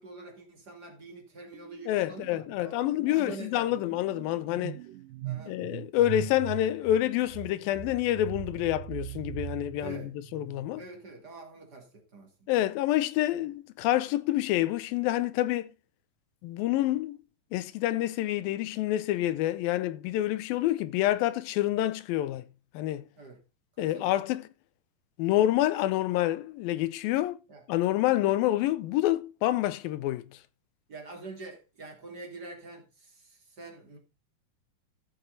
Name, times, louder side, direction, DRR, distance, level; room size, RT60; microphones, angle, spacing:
voice 1, 0.0-2.8 3.1-4.0 5.2-5.6 9.8-10.1 10.8-12.5 23.2-23.4 23.8-24.2 27.5-27.6 30.9-34.0, right 3 dB, 30° right, 2.7 m, -45 dB
Deep Sea--Deeper Space, 1.5-1.9 2.1-10.9, right 15 dB, 80° right, 2.4 m, -41 dB
voice 2, 1.9-4.8 5.5-10.0 10.3-10.8 12.5-15.7 16.4-17.2 17.5-22.4 22.7-23.1 23.8-24.5 25.2-27.4 27.7-30.2, left 14 dB, 85° left, 2.5 m, -27 dB
14.5 x 7.1 x 3.9 m
omnidirectional pair, 4.1 m